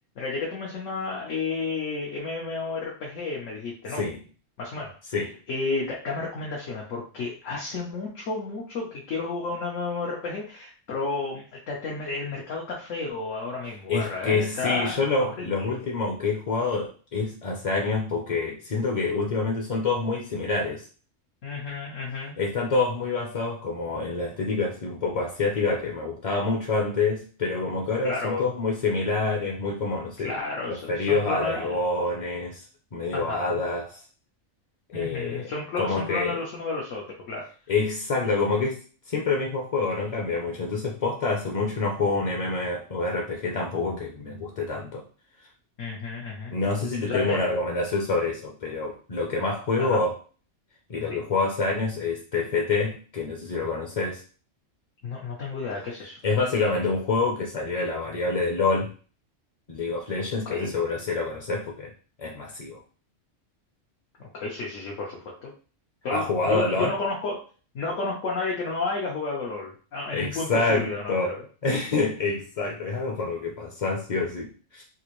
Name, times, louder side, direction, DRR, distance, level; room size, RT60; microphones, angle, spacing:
voice 1, 0.2-4.0 4.6-5.0 5.5-15.7 21.4-22.4 28.0-28.5 30.2-31.8 33.1-33.6 34.9-37.5 45.8-46.5 47.0-47.4 49.8-50.0 51.1-51.2 55.0-56.2 60.5-60.7 64.2-65.5 66.0-67.4 67.7-71.4, left 3 dB, 85° left, -3 dB, 1.2 m, -32 dB
voice 2, 13.9-20.9 22.4-30.4 30.7-32.6 32.9-34.0 34.9-36.4 37.7-45.0 46.5-50.2 50.9-54.2 56.2-58.9 59.7-61.9 62.2-62.8 66.1-66.9 70.1-71.3 71.6-74.8, left 3 dB, 45° left, 0 dB, 0.5 m, -27 dB
3.7 x 2.5 x 3.0 m, 0.38 s
omnidirectional pair, 1.3 m